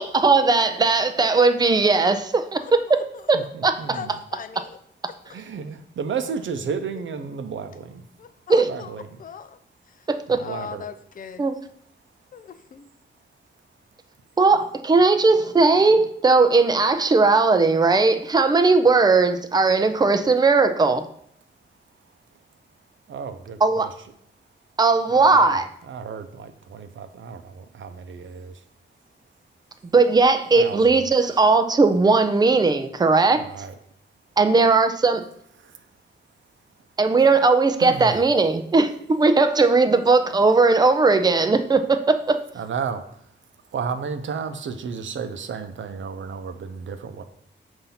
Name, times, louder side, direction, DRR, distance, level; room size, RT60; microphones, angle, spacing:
voice 1, 0.0-2.6 2.9-3.4 3.6-4.2 8.5-8.7 10.1-10.4 11.4-11.6 14.4-21.1 23.6-23.9 24.8-25.7 29.8-33.4 34.4-35.3 37.0-42.4, right 3 dB, 20° right, 8 dB, 0.4 m, -18 dB
voice 2, 3.3-4.2 5.3-8.0 8.7-9.2 10.3-10.9 23.1-23.9 25.1-25.6 25.9-28.6 30.6-31.4 33.3-33.7 35.6-35.9 37.8-38.1 42.5-43.3 43.7-47.2, right 6 dB, 90° right, 9 dB, 0.6 m, -33 dB
voice 3, 3.9-4.8 8.2-8.9 9.2-9.6 10.4-11.5 12.3-12.9, left 7 dB, 45° left, 11 dB, 0.4 m, -39 dB
7.0 x 2.7 x 5.6 m, 0.67 s
wide cardioid pair, 170°, 19 cm